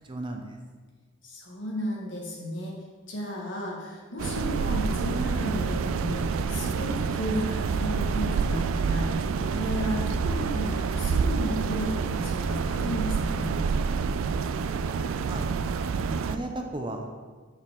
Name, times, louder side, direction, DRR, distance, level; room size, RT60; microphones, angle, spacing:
voice 1, 0.1-0.6 15.3-15.5 16.1-17.1, right 1 dB, 25° right, 3 dB, 0.5 m, -35 dB
voice 2, 1.2-2.7 3.1-13.6, equal, 60° left, -2 dB, 1.6 m, -33 dB
sound 1, 4.2-16.4, right 5 dB, 80° right, 0.3 m, -28 dB
6.4 x 6.1 x 3.7 m, 1.4 s
head